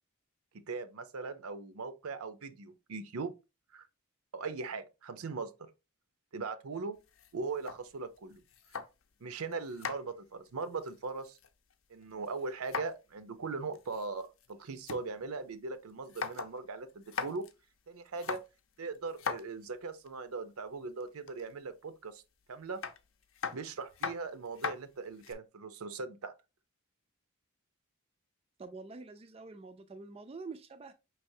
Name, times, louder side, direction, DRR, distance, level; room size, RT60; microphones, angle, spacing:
voice 1, 0.7-3.3 3.7-3.9 4.3-5.5 6.3-7.0 7.3-8.4 9.2-11.4 11.9-17.5 17.9-18.4 18.8-22.2 22.5-22.8 23.5-26.3, right 4 dB, 80° right, 0.6 m, -39 dB
sound 1, 7.0-9.2 9.5-11.7 12.0-13.1 13.4-13.5 13.7-15.0 15.4-15.5 15.9-16.6 16.9-17.5 18.1-20.1 21.0-21.5 22.8-25.3, left 6 dB, 65° left, 0.6 m, -40 dB
voice 2, 28.6-30.9, right 3 dB, 25° right, 0.3 m, -46 dB
5.3 x 3.3 x 2.6 m
head